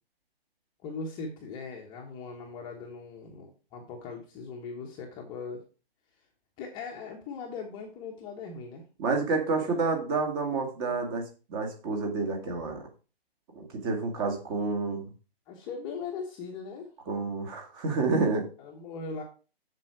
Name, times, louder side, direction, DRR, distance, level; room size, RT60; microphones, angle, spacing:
voice 1, 0.8-5.7 6.6-8.8 9.6-9.8 15.5-16.9 18.6-19.2, left 4 dB, 15° left, 0 dB, 1.2 m, -39 dB
voice 2, 9.0-11.2 11.5-12.8 13.5-15.1 17.1-18.5, right 3 dB, 25° right, 2 dB, 2.2 m, -29 dB
7.5 x 7.2 x 4.6 m, 0.34 s
hypercardioid pair, 150°, 31 cm